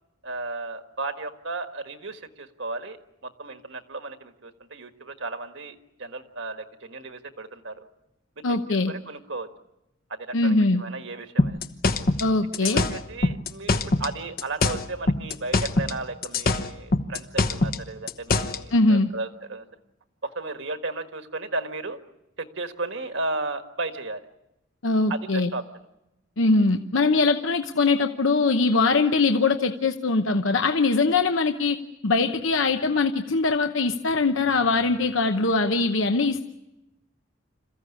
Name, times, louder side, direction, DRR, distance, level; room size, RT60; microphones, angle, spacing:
voice 1, 0.2-3.0 3.2-7.9 8.5-8.6 8.9-9.5 10.1-11.6 12.6-19.7 20.2-22.0 22.4-24.2 25.1-25.9, right 2 dB, 65° right, 7 dB, 1.6 m, -34 dB
voice 2, 8.4-8.9 10.3-10.8 12.2-12.9 18.7-19.1 24.8-25.5 26.4-31.8 32.0-36.4, left 3 dB, 75° left, 6 dB, 0.9 m, -22 dB
sound 1, 11.4-14.1 14.4-18.6, left 3 dB, 45° left, 1.0 m, -23 dB
27.0 x 15.0 x 9.9 m, 0.93 s
head